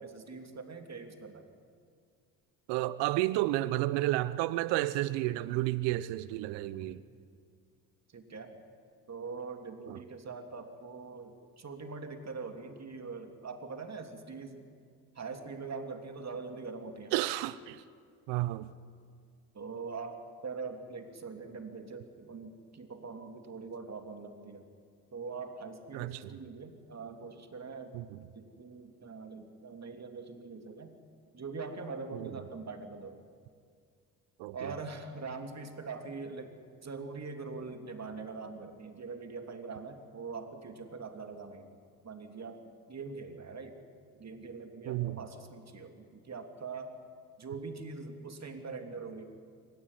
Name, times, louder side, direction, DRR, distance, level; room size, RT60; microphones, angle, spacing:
voice 1, 0.0-1.5 6.6-6.9 8.1-8.6 9.1-14.7 15.1-17.1 19.5-24.7 25.1-28.0 28.3-31.0 31.3-33.2 34.5-36.6 36.8-41.8 42.0-43.8 44.2-46.9 47.4-49.2, right 4 dB, 35° right, 2.9 m, -43 dB
voice 2, 2.7-7.0 9.9-10.0 17.1-17.8 18.3-18.7 25.9-26.3 27.9-28.2 32.1-32.3 34.4-34.7 44.9-45.2, right 16 dB, 65° right, 0.9 m, -31 dB
26.5 x 15.0 x 10.0 m
hypercardioid pair, 50°, 46 cm